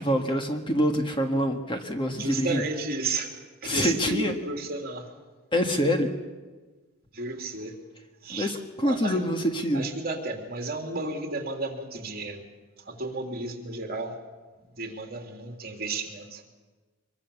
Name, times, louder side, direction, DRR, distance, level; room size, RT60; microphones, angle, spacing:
voice 1, 0.0-2.6 3.6-4.3 5.5-6.1 8.3-9.9, equal, 25° left, 5 dB, 1.7 m, -26 dB
voice 2, 2.1-3.3 3.6-5.1 7.1-7.7 8.2-8.5 8.8-9.3 9.7-12.4 12.8-14.2 14.7-16.4, right 3 dB, 45° right, 3 dB, 3.2 m, -33 dB
25.0 x 22.5 x 7.2 m, 1.3 s
head